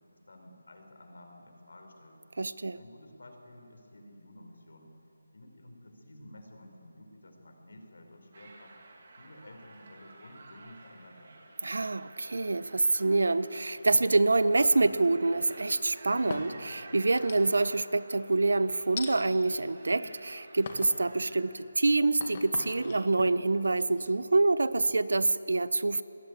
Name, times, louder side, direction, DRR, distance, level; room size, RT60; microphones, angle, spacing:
voice 1, 0.1-2.2 2.7-4.9 5.3-8.7 9.1-11.3, left 1 dB, 60° left, 4 dB, 5.1 m, -52 dB
voice 2, 2.4-2.8 11.6-26.0, right 3 dB, 65° right, 16 dB, 0.8 m, -26 dB
sound 1, 8.3-21.4, right 3 dB, 35° right, 2.7 m, -52 dB
sound 2, 14.8-15.6 16.1-16.7 17.2-17.8 19.0-19.2 19.8-20.2 20.7-21.0 21.5-25.2, left 4 dB, 25° left, 1.8 m, -43 dB
25.5 x 20.0 x 8.4 m, 3.0 s
figure-of-eight pair, 180°, 0 cm